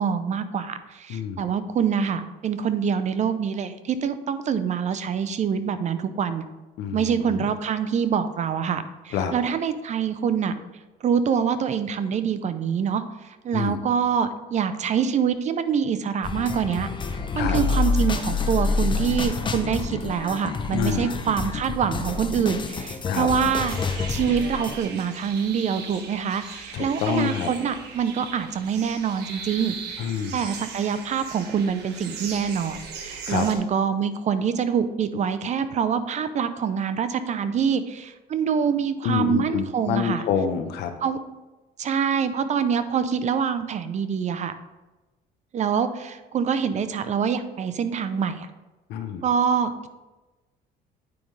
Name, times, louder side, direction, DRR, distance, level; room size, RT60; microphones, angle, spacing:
voice 1, 0.0-6.5 6.9-10.5 11.0-16.9 17.3-30.0 30.3-40.2 41.0-41.2 41.8-44.5 45.5-48.5 49.2-49.9, right 7 dB, 45° right, 11 dB, 0.6 m, -25 dB
voice 2, 1.1-1.5 6.8-7.5 9.1-9.3 13.5-13.8 17.3-17.6 20.7-21.1 23.1-23.3 26.7-27.5 30.0-30.4 33.2-33.5 39.0-40.9 48.9-49.2, left 7 dB, 80° left, 6 dB, 0.9 m, -27 dB
sound 1, 16.2-24.8, left 4 dB, 30° left, 0.7 m, -27 dB
sound 2, 23.7-33.5, right 5 dB, 80° right, 1.2 m, -39 dB
9.4 x 5.2 x 3.2 m, 1.1 s
cardioid pair, 110°, 17 cm